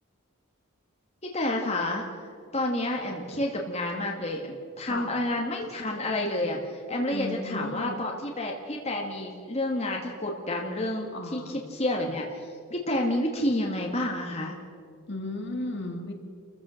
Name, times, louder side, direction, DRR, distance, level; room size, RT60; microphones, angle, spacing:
voice 1, 1.2-2.0 2.5-11.4 11.7-14.6, left 1 dB, 30° left, 0 dB, 1.9 m, -29 dB
voice 2, 4.8-5.2 7.1-8.0 11.1-11.6 15.1-16.1, left 2 dB, 55° left, 3 dB, 2.2 m, -35 dB
29.0 x 15.0 x 6.5 m, 2.3 s
head